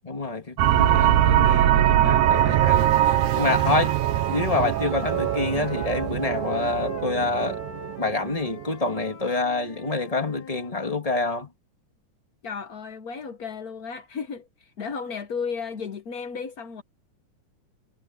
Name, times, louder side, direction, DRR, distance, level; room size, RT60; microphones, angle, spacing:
voice 1, 0.1-2.9 3.4-3.9 4.3-7.6 8.0-11.5, left 3 dB, 15° left, 1.7 m, -27 dB
sound 1, 0.6-8.6, right 12 dB, 85° right, 2.4 m, -22 dB
Wind instrument woodwind instrument, 2.5-6.1 6.4-10.7, left 5 dB, 55° left, 4.2 m, -42 dB
voice 2, 2.6-3.0 12.4-16.8, left 5 dB, 85° left, 0.8 m, -34 dB
omnidirectional pair, 3.5 m